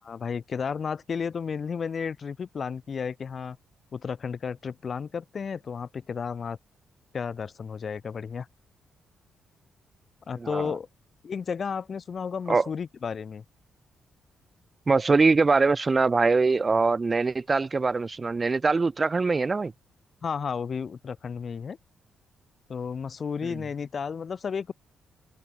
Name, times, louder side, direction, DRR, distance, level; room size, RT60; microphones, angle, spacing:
voice 1, 0.0-3.6 3.9-6.6 7.1-8.5 10.3-10.9 11.2-13.4 20.2-21.8 22.7-24.7, left 6 dB, 55° left, 4.9 m, -33 dB
voice 2, 10.4-10.7 12.5-12.7 14.9-19.7 23.4-23.6, right 4 dB, 35° right, 1.9 m, -23 dB
supercardioid pair, 50°, 0 cm